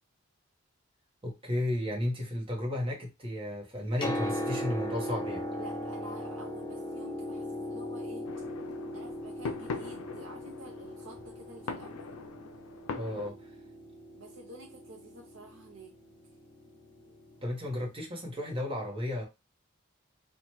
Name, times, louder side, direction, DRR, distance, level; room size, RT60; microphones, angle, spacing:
voice 1, 1.2-5.4 12.9-13.4 17.4-19.2, left 1 dB, 25° right, 0.8 m, -33 dB
Piano, 3.7-17.5 18.6-18.7, left 1 dB, 20° left, 0.5 m, -39 dB
voice 2, 5.6-8.3 8.9-12.1 14.1-15.9, right 2 dB, 60° right, 0.5 m, -49 dB
sound 1, 8.3-13.3, left 5 dB, 80° left, 0.4 m, -42 dB
2.8 x 2.2 x 3.0 m
head